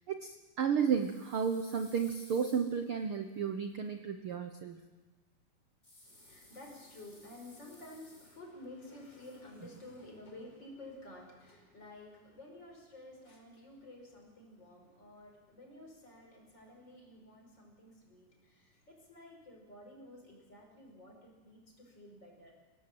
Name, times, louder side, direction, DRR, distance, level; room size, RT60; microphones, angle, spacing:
voice 1, 0.1-4.8, right 7 dB, 75° right, 6 dB, 1.2 m, -33 dB
sound 1, 0.8-3.8 5.8-8.6 8.9-10.0, left 1 dB, 15° left, 5.1 m, -60 dB
voice 2, 6.0-22.5, left 1 dB, 30° left, 1 dB, 5.8 m, -52 dB
23.0 x 18.0 x 7.6 m, 1.2 s
omnidirectional pair, 3.8 m